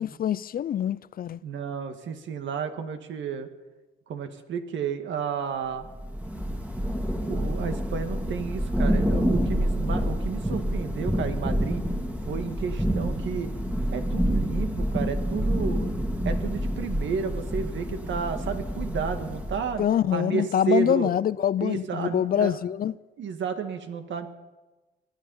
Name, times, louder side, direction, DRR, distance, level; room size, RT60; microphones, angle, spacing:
voice 1, 0.0-1.4 19.8-22.9, left 10 dB, 50° left, 0.5 m, -25 dB
voice 2, 1.4-3.5 4.1-5.9 7.3-11.8 12.3-13.5 13.9-15.9 16.2-19.9 20.1-21.1 21.6-22.6 23.2-24.3, right 6 dB, 70° right, 1.9 m, -32 dB
Thunder / Rain, 5.8-19.9, equal, 10° right, 2.2 m, -28 dB
22.0 x 11.0 x 5.6 m
cardioid pair, 90°, 20 cm